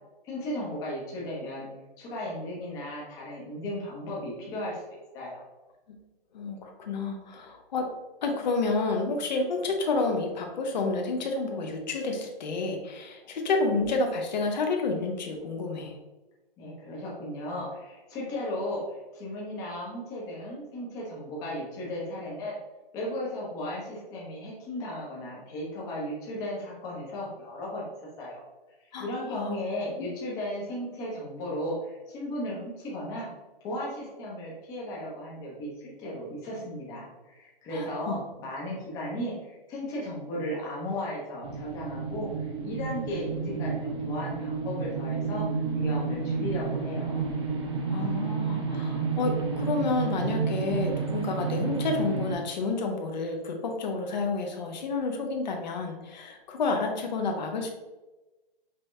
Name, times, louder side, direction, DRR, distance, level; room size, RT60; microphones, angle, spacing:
voice 1, 0.2-1.7 2.0-4.8 5.1-5.4 16.6-22.6 22.9-27.9 28.2-28.4 29.0-33.3 33.6-45.5 45.7-47.3, left 1 dB, 10° left, -5 dB, 0.9 m, -35 dB
voice 2, 6.3-7.9 8.2-16.0 28.9-30.1 37.7-38.2 47.9-57.7, left 3 dB, 45° left, 3 dB, 0.9 m, -30 dB
sound 1, 41.4-52.3, right 5 dB, 30° right, 0.6 m, -31 dB
5.3 x 2.8 x 3.3 m, 1.1 s
hypercardioid pair, 165°, 30 cm